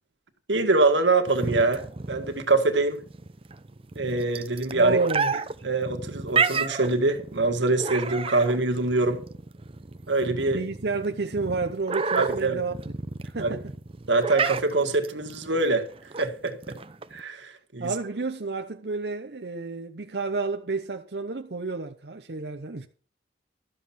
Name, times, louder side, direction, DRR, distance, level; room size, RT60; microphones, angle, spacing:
voice 1, 0.5-3.0 4.0-5.0 5.6-9.2 10.1-10.6 12.2-12.6 13.4-13.5 14.1-15.9 16.2-16.8 17.1-17.9, right 3 dB, 90° right, 1.7 m, -24 dB
sound 1, 1.3-17.2, right 5 dB, 30° right, 0.7 m, -31 dB
voice 2, 4.7-5.3 10.5-12.7 13.2-13.7 17.8-22.9, right 3 dB, 65° right, 0.8 m, -30 dB
13.0 x 7.5 x 5.8 m
head